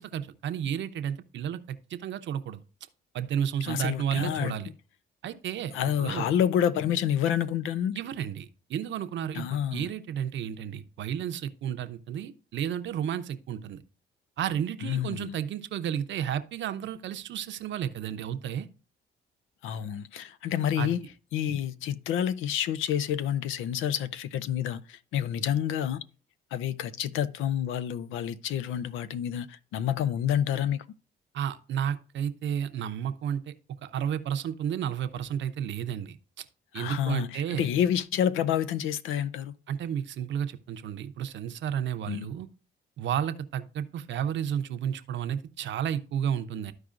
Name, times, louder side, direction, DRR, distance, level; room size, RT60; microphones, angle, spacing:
voice 1, 0.0-2.6 3.1-4.7 5.2-5.7 6.0-6.3 7.9-13.8 14.4-18.7 20.8-20.9 31.3-33.5 33.8-36.5 36.7-37.7 39.7-42.5 43.0-46.7, right 9 dB, 70° right, 0.7 m, -32 dB
voice 2, 3.6-4.5 5.7-8.0 9.3-9.9 14.8-15.3 19.6-21.0 21.3-26.0 26.5-30.8 36.7-39.5 42.1-42.3, left 10 dB, 90° left, 0.5 m, -28 dB
13.0 x 4.7 x 2.5 m
cardioid pair, 90°, 20 cm